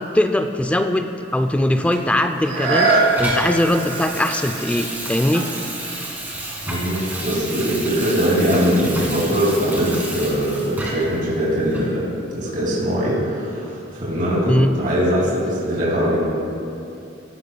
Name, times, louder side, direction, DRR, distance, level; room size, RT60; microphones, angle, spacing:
voice 1, 0.0-5.5 14.5-14.7, left 1 dB, 5° left, 7 dB, 0.3 m, -20 dB
Water tap faucet / Sink (filling or washing), 1.9-11.2 11.7-11.9, right 1 dB, 10° right, 1.9 m, -31 dB
sound 1, 2.4-8.0 8.6-8.7, right 3 dB, 75° right, 1.7 m, -25 dB
voice 2, 6.6-16.2, equal, 45° right, -7 dB, 2.8 m, -21 dB
16.0 x 11.5 x 2.3 m, 2.6 s
head